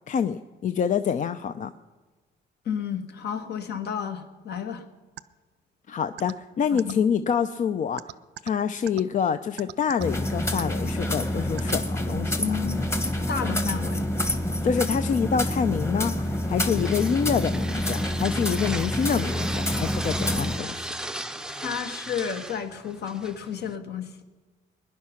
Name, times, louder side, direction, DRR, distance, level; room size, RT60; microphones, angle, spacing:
voice 1, 0.1-1.7 5.9-8.0 8.4-12.6 14.6-20.8, left 7 dB, 45° left, 11 dB, 0.5 m, -26 dB
voice 2, 2.6-4.8 6.7-7.0 12.4-12.9 13.3-14.1 21.6-24.1, left 7 dB, 65° left, 7 dB, 1.5 m, -31 dB
sound 1, 5.2-5.3 6.2-6.3 6.8-6.9 8.0-8.5 8.9-9.0 9.6-10.0 10.5-10.6 11.6-11.7, right 14 dB, 70° right, 0.5 m, -37 dB
sound 2, 10.0-20.6, left 1 dB, 15° left, 1.2 m, -27 dB
sound 3, 16.2-23.8, right 1 dB, 5° right, 0.6 m, -36 dB
21.5 x 10.5 x 5.8 m, 1.3 s
cardioid pair, 120°, 18 cm